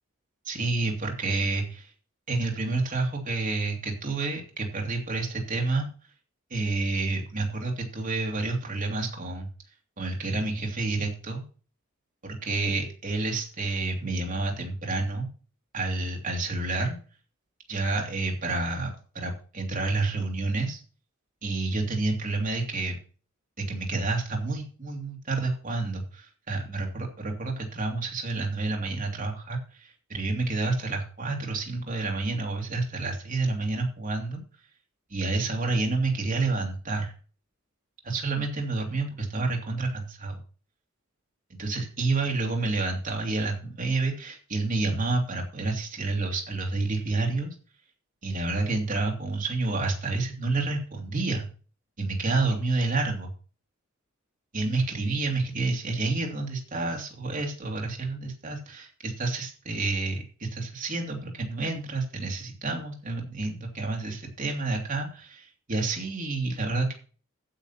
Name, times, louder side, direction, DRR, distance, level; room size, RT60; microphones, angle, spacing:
voice 1, 0.4-1.9 2.3-5.9 6.5-9.5 10.0-11.4 12.2-15.3 15.7-17.0 17.7-20.8 21.4-23.0 23.6-34.4 35.1-37.1 38.0-40.4 41.6-47.5 48.2-51.5 52.0-53.3 54.5-66.9, right 3 dB, 40° right, 1 dB, 2.5 m, -29 dB
9.0 x 7.4 x 5.7 m, 0.37 s
head